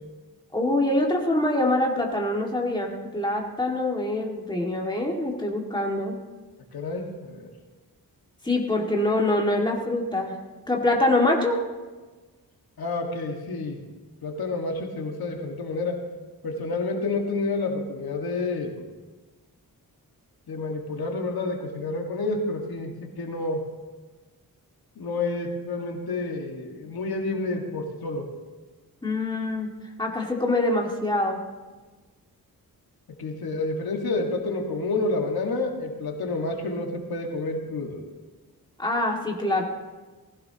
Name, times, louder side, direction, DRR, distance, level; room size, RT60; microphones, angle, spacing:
voice 1, 0.5-6.1 8.4-10.4 10.7-11.6 29.0-29.7 30.0-31.4 38.8-39.6, left 1 dB, 10° left, -1 dB, 2.0 m, -24 dB
voice 2, 6.7-7.5 12.8-13.8 14.2-16.0 16.4-18.8 20.5-23.6 25.0-28.3 33.2-38.0, left 3 dB, 75° left, 2 dB, 1.9 m, -29 dB
19.5 x 15.5 x 2.9 m, 1.3 s
wide cardioid pair, 125°, 37 cm